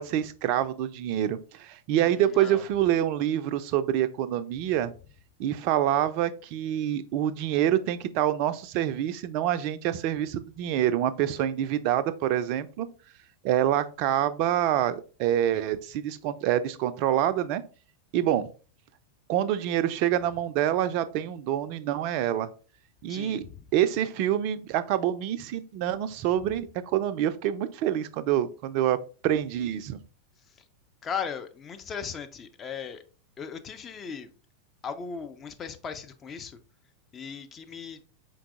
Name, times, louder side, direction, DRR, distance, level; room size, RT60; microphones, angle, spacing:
voice 1, 0.0-4.9 5.4-12.9 13.4-17.6 18.1-18.4 19.3-22.5 23.0-23.4 23.7-29.0 29.2-30.0, right 11 dB, 45° right, 0.3 m, -26 dB
voice 2, 2.1-2.6 23.1-23.6 31.0-33.0 33.4-34.3 34.8-36.6 37.1-38.0, left 6 dB, 25° left, 0.4 m, -37 dB
4.6 x 3.8 x 2.4 m
figure-of-eight pair, 90°, 0 cm